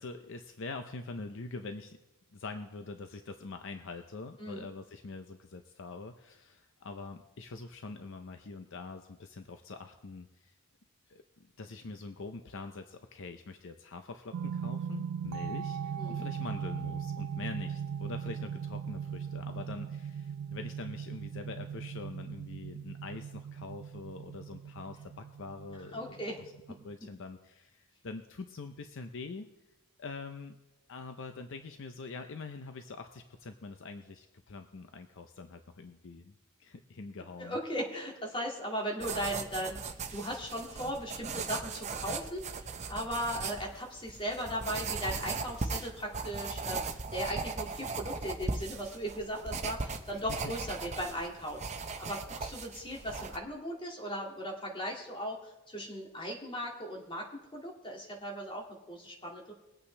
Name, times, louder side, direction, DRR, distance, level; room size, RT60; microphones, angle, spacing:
voice 1, 0.0-2.0 2.3-10.6 11.1-26.2 26.8-29.5 30.0-30.6 30.9-36.3 36.6-37.6 50.1-50.5, left 3 dB, 60° left, 7 dB, 0.6 m, -44 dB
sound 1, 14.3-26.9, right 7 dB, 90° right, 0.3 m, -39 dB
voice 2, 25.9-26.4 37.4-59.5, equal, 25° left, -1 dB, 2.2 m, -38 dB
sound 2, 39.0-53.4, right 4 dB, 30° right, 0.8 m, -38 dB
21.0 x 8.5 x 3.3 m, 1.0 s
head